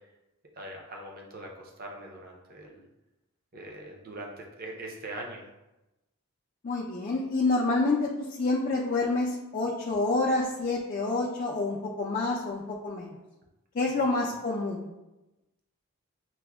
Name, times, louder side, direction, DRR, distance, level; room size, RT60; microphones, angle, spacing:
voice 1, 0.6-2.9 3.5-5.4 13.9-14.3, right 1 dB, 40° right, 0 dB, 0.5 m, -42 dB
voice 2, 6.6-13.1 13.7-14.9, left 3 dB, 35° left, -3 dB, 0.3 m, -28 dB
5.9 x 2.1 x 2.3 m, 0.99 s
head